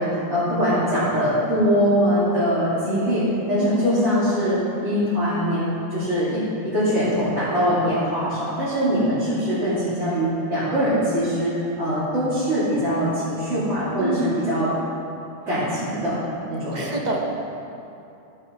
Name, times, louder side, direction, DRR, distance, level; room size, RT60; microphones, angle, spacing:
voice 1, 0.0-6.4 6.7-14.7 15.5-16.1 16.5-16.9, equal, 60° right, -14 dB, 3.3 m, -22 dB
voice 2, 3.6-4.3 14.0-14.4 16.7-17.2, right 2 dB, 35° right, 0 dB, 1.1 m, -26 dB
15.0 x 5.7 x 5.3 m, 2.7 s
omnidirectional pair, 1.3 m